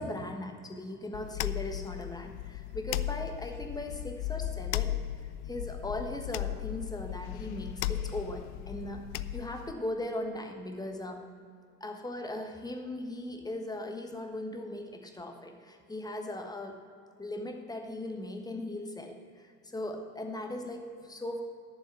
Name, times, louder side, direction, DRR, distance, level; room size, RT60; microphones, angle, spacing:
voice 1, 0.0-5.0 5.5-11.2 11.8-16.8 17.2-21.4, left 1 dB, 10° left, 4 dB, 1.3 m, -38 dB
sound 1, 1.1-9.7, left 13 dB, 45° left, 0.4 m, -36 dB
12.0 x 7.1 x 6.9 m, 2.3 s
figure-of-eight pair, 70°, 49 cm